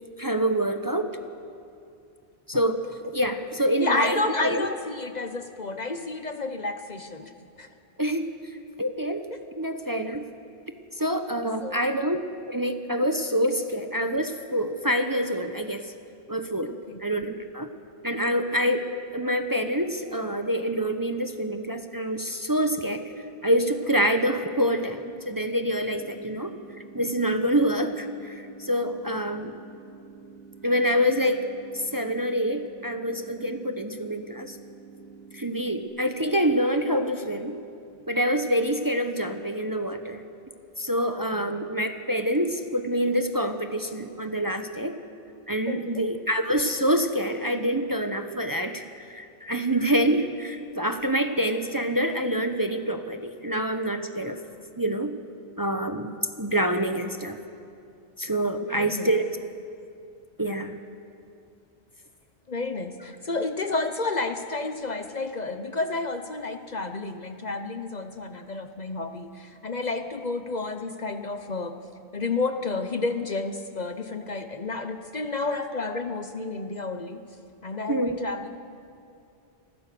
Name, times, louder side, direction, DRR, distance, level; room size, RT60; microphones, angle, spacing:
voice 1, 0.2-1.1 2.5-2.8 3.1-4.7 8.0-8.3 8.8-9.2 9.6-10.3 11.0-12.2 12.5-15.9 16.3-16.7 17.0-17.7 18.0-23.0 23.4-26.5 26.9-29.5 30.6-31.5 31.7-34.6 35.3-37.6 38.1-40.2 40.8-45.0 45.5-54.4 54.8-55.2 55.6-57.4 58.2-59.2 60.4-60.8 77.9-78.2, equal, 20° right, 7 dB, 0.9 m, -26 dB
voice 2, 3.8-7.7 9.3-9.4 11.6-11.8 16.7-17.0 45.7-46.1 58.6-59.1 62.5-71.8 72.1-77.2 77.6-78.5, left 3 dB, 45° left, 8 dB, 0.9 m, -31 dB
sound 1, 25.8-35.8, right 5 dB, 75° right, 7.5 m, -48 dB
27.0 x 15.0 x 6.8 m, 2.6 s
omnidirectional pair, 1.1 m